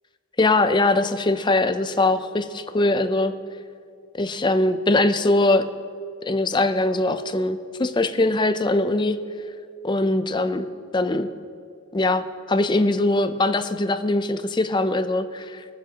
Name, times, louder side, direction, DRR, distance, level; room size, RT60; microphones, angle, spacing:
voice 1, 0.4-3.3 4.2-5.6 6.3-9.2 9.8-11.3 11.9-15.6, left 2 dB, 20° left, 9 dB, 0.4 m, -22 dB
21.5 x 7.3 x 2.9 m, 2.4 s
head